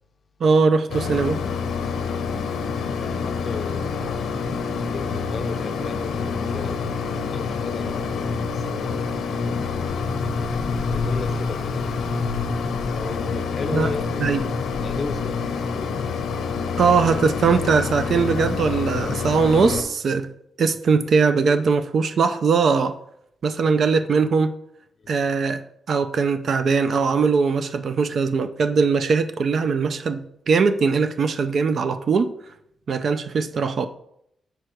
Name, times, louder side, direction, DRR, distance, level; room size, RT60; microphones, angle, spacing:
voice 1, 0.4-1.4 13.7-13.9 14.2-14.4 16.8-20.3 20.6-23.0 23.4-24.5 25.1-25.6 25.9-32.3 32.9-33.9, right 5 dB, 50° right, 0.4 m, -20 dB
Mechanisms, 0.9-19.8, left 5 dB, 80° left, 0.7 m, -27 dB
voice 2, 2.9-4.0 4.9-9.2 10.9-11.9 12.9-14.5 14.8-15.4 15.7-16.0, left 4 dB, 35° left, 0.5 m, -35 dB
6.4 x 4.6 x 4.5 m
wide cardioid pair, 155°, 0 cm